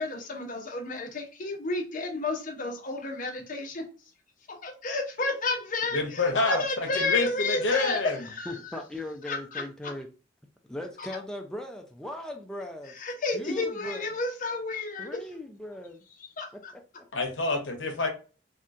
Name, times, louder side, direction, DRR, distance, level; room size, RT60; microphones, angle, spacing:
voice 1, 0.0-3.8 4.5-8.8 9.3-9.6 11.0-11.1 13.0-15.2 16.4-16.7, left 3 dB, 45° left, 0.8 m, -31 dB
voice 2, 5.9-8.2 17.1-18.1, left 3 dB, 85° left, 0.8 m, -27 dB
voice 3, 8.5-10.1 10.6-13.0 13.3-14.0 15.0-16.1 16.5-17.1 17.9-18.0, left 1 dB, 5° left, 0.4 m, -39 dB
3.6 x 2.3 x 2.6 m
head